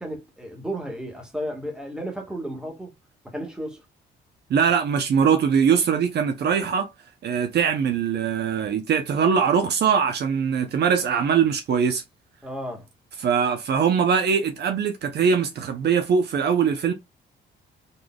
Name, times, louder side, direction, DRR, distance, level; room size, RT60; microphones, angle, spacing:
voice 1, 0.0-2.9 3.2-3.8 12.4-12.9, equal, 5° right, 1.4 m, -33 dB
voice 2, 4.5-6.9 7.2-12.0 13.2-16.9, right 7 dB, 60° right, 0.6 m, -22 dB
4.1 x 3.1 x 2.3 m
cardioid pair, 90°, 20 cm